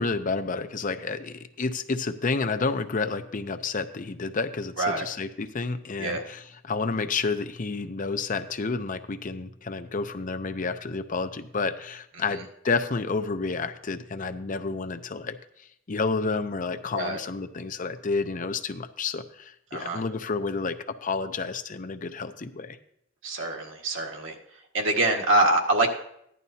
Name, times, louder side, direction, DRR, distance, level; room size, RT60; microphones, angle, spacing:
voice 1, 0.0-15.4 15.9-22.8, left 4 dB, 45° left, 9 dB, 0.6 m, -30 dB
voice 2, 19.7-20.0 23.2-24.4 24.7-25.9, right 2 dB, 75° right, 1 dB, 1.8 m, -25 dB
15.0 x 11.0 x 2.8 m, 0.73 s
head